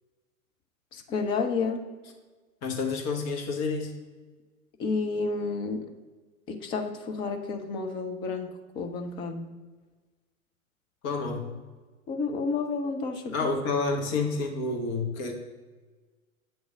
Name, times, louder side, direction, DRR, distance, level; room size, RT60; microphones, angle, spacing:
voice 1, 0.9-1.8 4.8-5.9 6.5-8.5 8.8-9.5 12.1-13.3, left 4 dB, 15° left, 4 dB, 0.3 m, -30 dB
voice 2, 2.6-3.9 11.0-11.6 13.3-15.3, left 4 dB, 40° left, 3 dB, 1.2 m, -29 dB
8.0 x 3.2 x 6.0 m, 1.3 s
hypercardioid pair, 100°, 42 cm